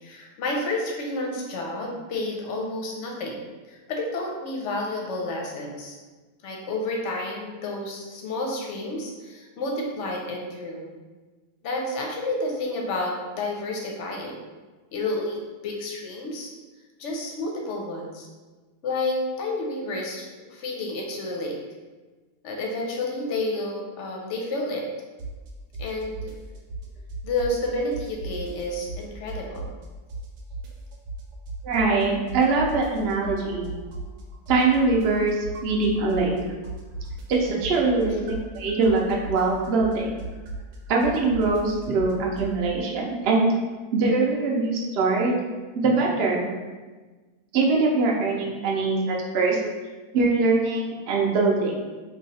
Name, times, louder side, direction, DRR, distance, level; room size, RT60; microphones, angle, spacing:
voice 1, 0.0-6.0 6.4-10.9 11.6-14.4 14.9-16.5 17.0-18.3 18.8-21.6 22.4-24.9 25.8-26.3 27.2-29.7, left 2 dB, 60° left, -1 dB, 0.8 m, -30 dB
sound 1, 25.2-25.5 25.7-27.7 27.9-29.8 30.1-32.0 32.3-36.4 36.6-42.5, right 2 dB, 90° right, 1.2 m, -36 dB
voice 2, 31.6-33.7 34.5-36.3 37.3-40.1 40.9-43.5 43.9-45.4 45.7-46.4 47.5-49.6 50.1-51.8, right 3 dB, 65° right, -1 dB, 0.6 m, -22 dB
3.1 x 2.3 x 4.0 m, 1.3 s
omnidirectional pair, 1.7 m